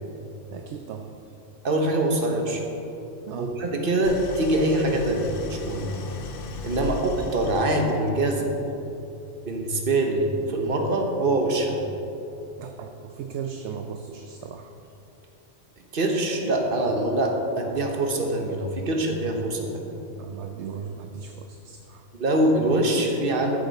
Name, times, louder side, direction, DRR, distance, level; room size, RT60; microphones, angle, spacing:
voice 1, 0.5-1.1 3.3-3.6 5.9-6.1 6.8-7.0 12.6-14.7 20.1-22.1, right 7 dB, 70° right, 5 dB, 0.8 m, -37 dB
voice 2, 1.6-2.7 3.4-5.9 6.6-7.0 7.3-8.5 9.5-11.8 15.9-19.8 22.1-23.6, right 1 dB, 45° right, 3 dB, 1.2 m, -24 dB
Idling, 4.0-8.3, left 4 dB, 55° left, 0.7 m, -37 dB
13.0 x 7.4 x 4.2 m, 2.9 s
omnidirectional pair, 1.3 m